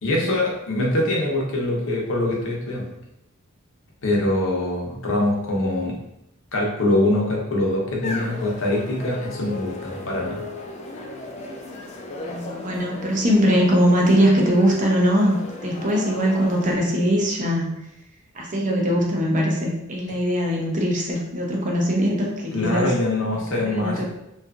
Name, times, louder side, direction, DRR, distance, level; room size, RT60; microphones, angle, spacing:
voice 1, 0.0-2.9 4.0-6.0 6.5-10.4 22.5-24.0, left 1 dB, 65° left, -2 dB, 0.7 m, -23 dB
sound 1, 8.0-16.7, left 2 dB, 30° left, 0.3 m, -36 dB
voice 2, 12.2-15.4 15.6-17.8 18.3-23.0 23.3-24.0, equal, 35° right, -1 dB, 0.5 m, -21 dB
2.7 x 2.4 x 2.3 m, 0.86 s
head